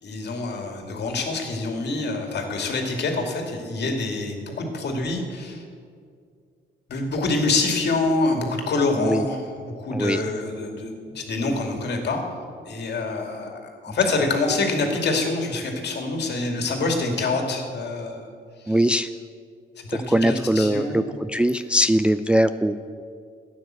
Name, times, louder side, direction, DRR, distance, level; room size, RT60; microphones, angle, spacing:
voice 1, 0.0-5.6 6.9-9.4 9.7-12.2 12.7-18.2 18.7-19.0 19.9-21.0, left 3 dB, 60° left, 3 dB, 2.5 m, -26 dB
voice 2, 9.9-10.2 18.7-19.1 19.9-23.0, equal, 5° right, 10 dB, 0.4 m, -21 dB
13.0 x 9.4 x 7.6 m, 2.2 s
cardioid pair, 90°, 20 cm